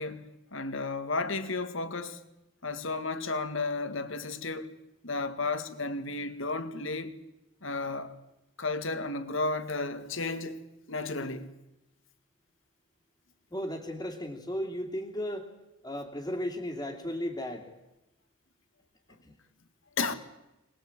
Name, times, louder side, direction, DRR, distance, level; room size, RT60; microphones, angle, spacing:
voice 1, 0.0-2.2 2.6-4.7 5.0-7.1 7.6-8.2 8.6-10.6 10.9-11.5 20.0-20.2, left 3 dB, 65° left, 2.0 m, -33 dB
voice 2, 13.5-15.5 15.8-17.7 19.2-19.4, equal, 15° left, 2.7 m, -35 dB
25.0 x 20.5 x 8.9 m
head